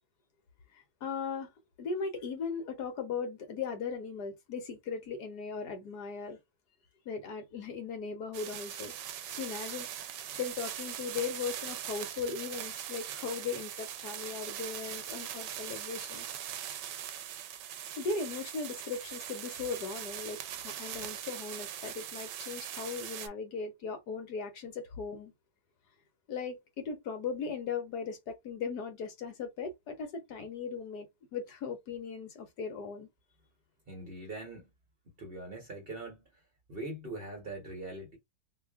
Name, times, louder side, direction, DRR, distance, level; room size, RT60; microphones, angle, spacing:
voice 1, 0.7-1.5 1.8-6.4 7.0-8.9 9.4-9.9 10.3-16.3 18.0-25.3 26.3-33.1, left 5 dB, 65° left, 1.4 m, -38 dB
sound 1, 8.3-23.3, right 10 dB, 80° right, 1.2 m, -41 dB
voice 2, 33.9-34.7 35.2-36.3 36.7-38.2, right 2 dB, 35° right, 1.2 m, -42 dB
3.2 x 2.4 x 3.4 m
omnidirectional pair, 1.9 m